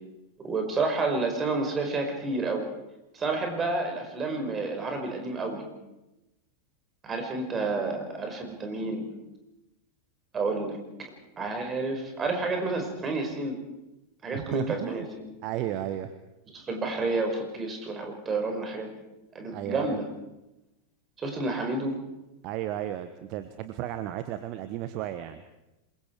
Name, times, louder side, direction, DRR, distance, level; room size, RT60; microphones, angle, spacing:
voice 1, 0.4-2.6 3.1-5.8 7.0-9.1 10.3-10.8 11.4-13.6 14.2-15.3 16.5-18.9 19.3-20.1 21.2-22.0, right 3 dB, 20° right, 3 dB, 5.3 m, -30 dB
voice 2, 14.3-15.1 15.4-16.1 19.5-20.0 22.4-25.4, right 12 dB, 40° right, 10 dB, 1.2 m, -33 dB
27.5 x 22.5 x 4.8 m, 0.94 s
figure-of-eight pair, 90°, 0 cm